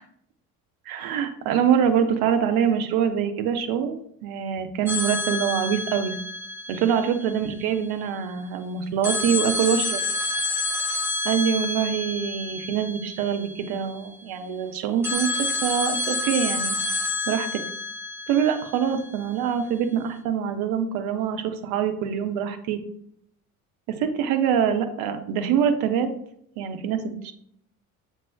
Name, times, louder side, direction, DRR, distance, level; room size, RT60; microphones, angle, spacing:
voice 1, 0.9-6.1 6.7-10.0 11.2-15.3 15.6-16.8 17.3-17.6 18.3-22.8 24.0-26.1 26.6-27.3, right 8 dB, 55° right, 7 dB, 0.8 m, -24 dB
sound 1, 4.9-7.8 9.0-14.0 15.0-19.2, left 2 dB, 5° right, 1.2 m, -29 dB
7.4 x 3.0 x 2.2 m, 0.69 s
figure-of-eight pair, 55°, 43 cm